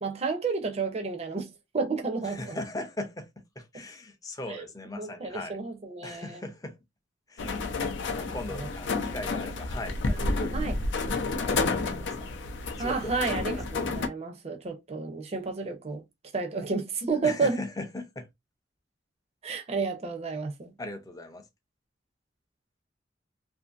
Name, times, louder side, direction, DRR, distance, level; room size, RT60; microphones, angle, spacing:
voice 1, 0.0-2.6 4.5-4.6 4.9-6.4 10.5-10.8 12.8-16.0 16.3-17.6 19.4-20.7, right 4 dB, 35° right, 0.5 m, -31 dB
voice 2, 2.2-3.3 3.6-5.6 6.0-6.8 7.3-7.9 8.2-10.7 11.1-12.3 12.8-13.6 17.2-18.3 20.8-21.5, left 2 dB, 20° left, 0.5 m, -39 dB
sound 1, 7.4-14.1, left 3 dB, 70° left, 0.5 m, -30 dB
2.6 x 2.6 x 2.4 m
head